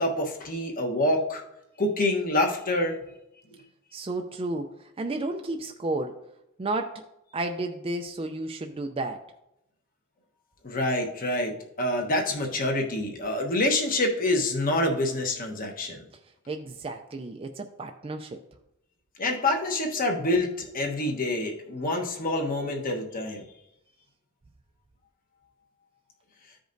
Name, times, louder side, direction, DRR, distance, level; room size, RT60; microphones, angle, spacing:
voice 1, 0.0-1.4 1.8-3.0 10.6-16.0 19.2-23.4, left 1 dB, 40° left, 2 dB, 1.1 m, -26 dB
voice 2, 3.9-6.2 6.6-7.0 7.3-9.2 16.5-18.4, right 2 dB, 25° right, 5 dB, 0.4 m, -32 dB
14.5 x 5.1 x 2.6 m, 0.86 s
head